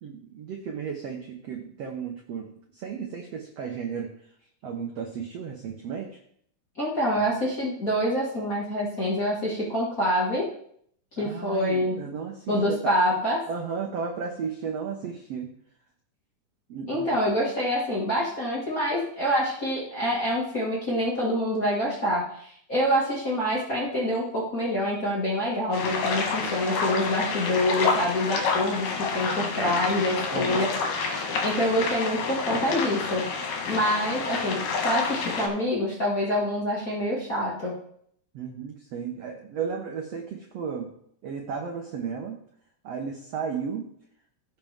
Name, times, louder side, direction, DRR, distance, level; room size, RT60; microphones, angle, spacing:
voice 1, 0.0-4.1 4.6-6.1 11.2-13.0 13.5-15.5 16.7-17.1 30.3-30.7 38.3-40.9 41.2-42.4 42.8-43.9, right 6 dB, 75° right, 2 dB, 1.5 m, -34 dB
voice 2, 6.8-10.4 11.2-12.0 12.5-13.4 16.9-30.7 31.4-33.2 33.6-37.7, equal, 30° left, -5 dB, 1.7 m, -26 dB
sound 1, 25.7-35.5, left 4 dB, 70° left, 3.0 m, -28 dB
16.0 x 5.9 x 3.6 m, 0.66 s
omnidirectional pair, 4.2 m